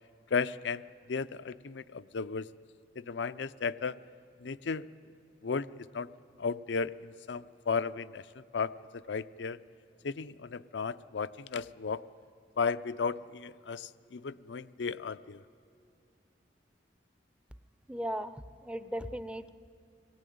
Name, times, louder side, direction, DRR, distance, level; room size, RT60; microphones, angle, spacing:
voice 1, 0.3-0.8 1.1-2.5 3.0-4.0 4.4-4.9 5.4-6.1 6.4-8.3 8.5-9.6 10.0-12.0 12.6-15.4, left 5 dB, 80° left, 15 dB, 0.5 m, -34 dB
voice 2, 17.9-18.4 18.6-19.5, equal, 5° right, 12 dB, 0.6 m, -36 dB
25.0 x 19.0 x 9.3 m, 2.6 s
head